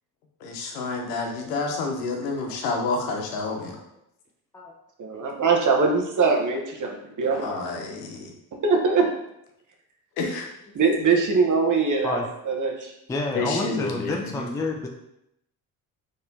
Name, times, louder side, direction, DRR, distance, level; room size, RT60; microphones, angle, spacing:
voice 1, 0.4-3.8 7.3-8.3 10.2-10.5 13.3-14.4, left 3 dB, 85° left, 2 dB, 0.8 m, -29 dB
voice 2, 5.0-7.5 8.6-9.1 10.7-12.9, right 4 dB, 40° right, 1 dB, 1.0 m, -22 dB
voice 3, 13.1-14.9, left 2 dB, 5° left, 1 dB, 0.4 m, -29 dB
4.1 x 3.2 x 2.7 m, 0.82 s
hypercardioid pair, 60°, 47 cm